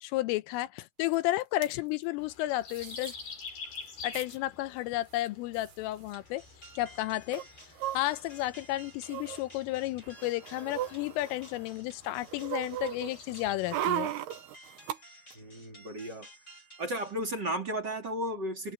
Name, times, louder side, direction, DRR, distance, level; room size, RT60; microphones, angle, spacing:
voice 1, 0.0-3.1 4.0-6.4 6.8-7.4 7.9-14.1, left 16 dB, 80° left, 3.3 m, -32 dB
sound 1, 1.1-1.2 1.4-1.7 2.7-3.2 3.5-3.6 3.8-4.4 5.2-5.3 5.5-5.7 7.3-8.5 9.0-9.4 10.0-11.7 12.1-15.0 15.3-15.4, right 12 dB, 65° right, 3.0 m, -37 dB
sound 2, 2.2-13.5, left 4 dB, 50° left, 9.5 m, -49 dB
sound 3, 6.1-17.1, equal, 15° left, 7.0 m, -55 dB
voice 2, 15.4-16.3 16.8-18.7, right 1 dB, 25° right, 2.6 m, -34 dB
omnidirectional pair, 6.0 m